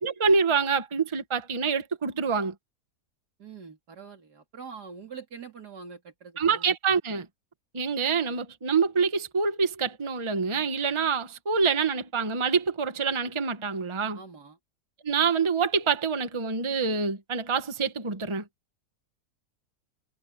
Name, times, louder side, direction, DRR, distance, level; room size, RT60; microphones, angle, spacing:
voice 1, 0.0-2.5 6.4-7.3 7.7-14.2 15.0-18.4, right 5 dB, 20° right, 1.1 m, -26 dB
voice 2, 3.4-6.6 14.1-14.6, right 5 dB, 85° right, 3.2 m, -44 dB
omnidirectional pair, 1.7 m